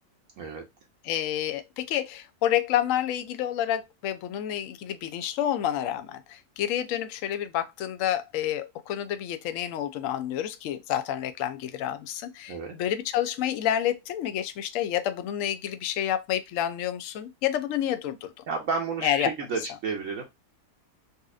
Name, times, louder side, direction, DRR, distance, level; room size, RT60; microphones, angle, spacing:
voice 1, 1.0-18.3 19.0-19.3, left 11 dB, 65° left, 0.8 m, -29 dB
voice 2, 18.5-20.2, right 5 dB, 60° right, 1.0 m, -31 dB
4.1 x 2.5 x 2.3 m
omnidirectional pair, 1.7 m